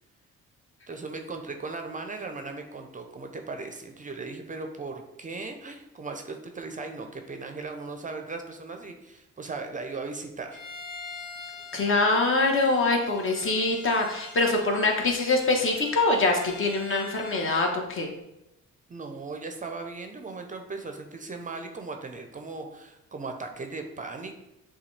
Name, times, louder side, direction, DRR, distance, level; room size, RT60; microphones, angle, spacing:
voice 1, 0.9-10.6 18.9-24.3, right 3 dB, 25° right, 5 dB, 0.5 m, -37 dB
Bowed string instrument, 10.5-17.8, left 3 dB, 75° left, 1.4 m, -44 dB
voice 2, 11.7-18.1, left 3 dB, 45° left, 1 dB, 1.1 m, -24 dB
6.9 x 2.3 x 3.2 m, 0.91 s
cardioid pair, 90°, 30 cm